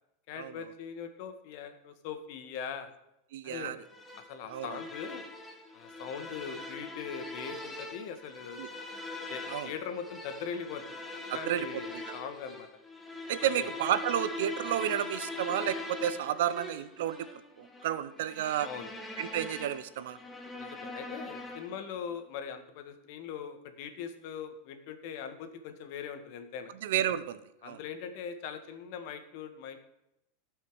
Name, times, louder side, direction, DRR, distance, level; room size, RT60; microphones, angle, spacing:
voice 1, 0.3-2.9 3.4-3.7 4.3-5.2 5.7-8.6 9.3-10.8 11.3-12.7 13.4-13.7 18.6-18.9 20.6-26.7 27.6-29.8, left 7 dB, 60° left, 8 dB, 1.4 m, -41 dB
voice 2, 3.3-3.8 4.5-4.8 8.6-8.7 9.5-9.7 11.3-11.7 11.9-12.1 13.3-17.3 17.6-18.7 19.2-20.2 26.8-27.8, right 11 dB, 75° right, 14 dB, 0.7 m, -31 dB
sound 1, 3.9-21.9, left 2 dB, 10° left, 1.2 m, -42 dB
16.0 x 5.6 x 4.7 m, 0.86 s
supercardioid pair, 140°, 0 cm